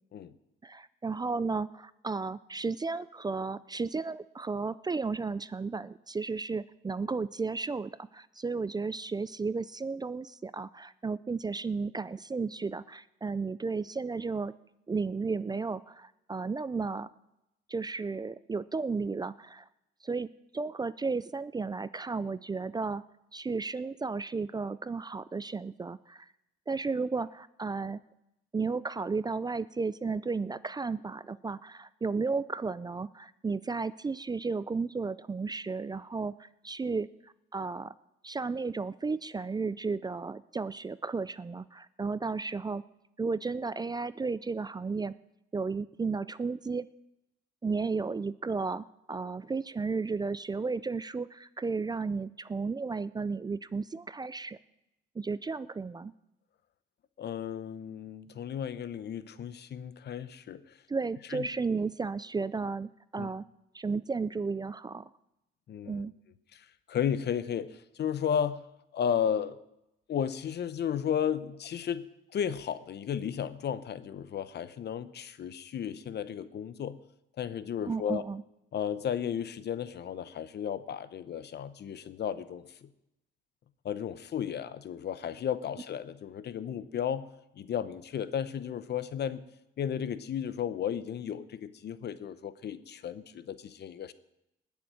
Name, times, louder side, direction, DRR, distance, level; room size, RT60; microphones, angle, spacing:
voice 1, 0.6-14.5 14.9-17.1 17.7-19.7 20.0-20.3 20.5-23.0 23.3-26.3 26.7-28.0 28.5-37.1 37.5-37.9 38.2-42.8 43.2-45.1 45.5-46.9 47.6-54.6 55.2-56.1 60.9-63.5 63.7-65.1 65.9-66.1 77.9-78.4, right 4 dB, 20° right, 17 dB, 0.4 m, -33 dB
voice 2, 57.2-60.6 61.3-61.5 63.2-63.3 65.7-66.1 66.5-68.6 68.9-69.6 70.1-72.1 72.3-77.0 77.4-78.2 78.7-82.9 83.8-87.3 87.5-89.4 89.8-94.1, left 8 dB, 60° left, 14 dB, 0.8 m, -34 dB
19.5 x 7.1 x 6.3 m, 0.87 s
cardioid pair, 90°, 20 cm